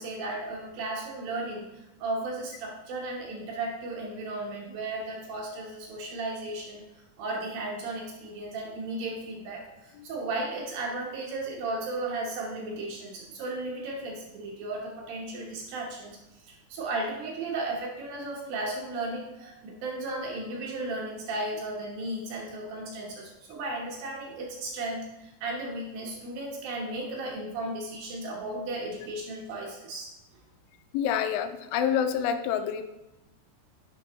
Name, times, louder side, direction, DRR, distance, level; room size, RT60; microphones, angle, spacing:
voice 1, 0.0-6.8 7.2-30.1, right 2 dB, 70° right, -1 dB, 2.4 m, -35 dB
voice 2, 30.9-32.8, left 8 dB, 85° left, 8 dB, 3.0 m, -27 dB
10.0 x 6.2 x 3.1 m, 0.96 s
omnidirectional pair, 5.4 m